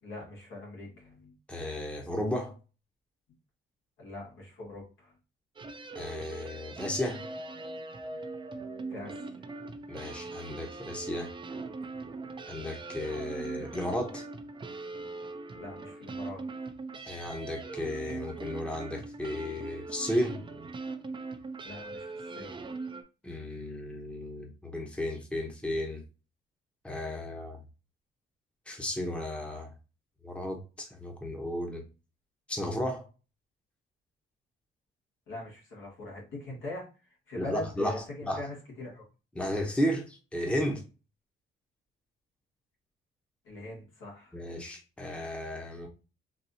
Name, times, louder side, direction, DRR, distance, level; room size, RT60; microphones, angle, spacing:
voice 1, 0.0-1.4 4.0-5.1 8.1-8.2 8.9-9.1 15.5-16.4 21.6-22.6 35.3-39.0 43.4-44.4, left 2 dB, 80° left, -4 dB, 2.1 m, -42 dB
voice 2, 1.5-2.5 5.9-7.3 9.9-11.3 12.5-14.2 17.0-20.4 23.2-26.0 26.8-27.6 28.7-29.7 30.2-31.8 32.5-33.1 37.4-38.4 39.3-40.8 44.3-45.9, left 1 dB, 5° left, 1 dB, 0.9 m, -34 dB
sound 1, 5.6-23.0, right 3 dB, 25° right, 0.5 m, -41 dB
4.0 x 2.6 x 2.7 m, 0.32 s
cardioid pair, 90°, 20 cm